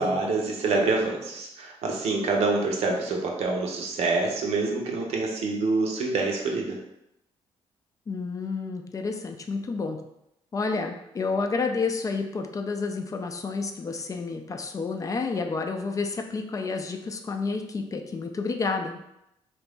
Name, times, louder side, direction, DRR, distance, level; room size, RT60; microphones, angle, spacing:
voice 1, 0.0-6.8, right 3 dB, 80° right, 0 dB, 0.7 m, -26 dB
voice 2, 8.1-10.0 10.5-19.0, left 4 dB, 30° left, 4 dB, 0.4 m, -30 dB
2.9 x 2.5 x 3.3 m, 0.83 s
cardioid pair, 105°, 11 cm